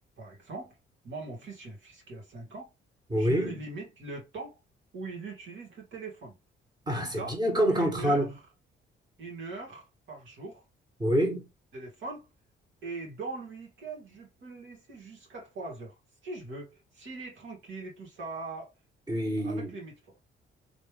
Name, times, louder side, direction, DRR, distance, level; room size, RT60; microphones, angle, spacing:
voice 1, 0.2-0.8 1.0-2.7 3.1-4.6 4.9-6.4 6.9-7.4 7.7-8.4 9.2-10.6 11.7-12.3 12.8-15.9 16.2-18.7 19.4-19.9, right 3 dB, 75° right, 2.6 m, -41 dB
voice 2, 3.1-3.6 6.9-8.3 11.0-11.5 19.1-19.7, equal, 20° right, 1.8 m, -26 dB
3.8 x 3.4 x 3.4 m
cardioid pair, 90°, 20 cm